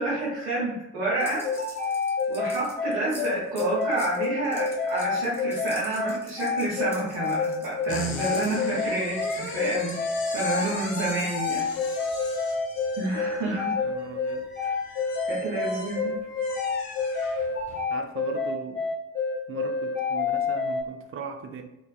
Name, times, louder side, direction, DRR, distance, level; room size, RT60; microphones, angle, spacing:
voice 1, 0.0-1.5 2.3-11.7 12.9-13.7 15.2-16.1, right 2 dB, 75° right, -7 dB, 0.8 m, -29 dB
sound 1, 1.2-8.5 9.2-11.6, equal, 5° left, 1.0 m, -46 dB
sound 2, 1.4-20.8, left 4 dB, 25° left, 1.4 m, -28 dB
sound 3, 7.9-17.8, left 3 dB, 60° left, 0.7 m, -39 dB
voice 2, 13.8-14.8 17.9-18.8 19.5-21.6, right 6 dB, 35° right, 5 dB, 0.5 m, -39 dB
2.5 x 2.3 x 2.2 m, 0.96 s
hypercardioid pair, 40°, 40 cm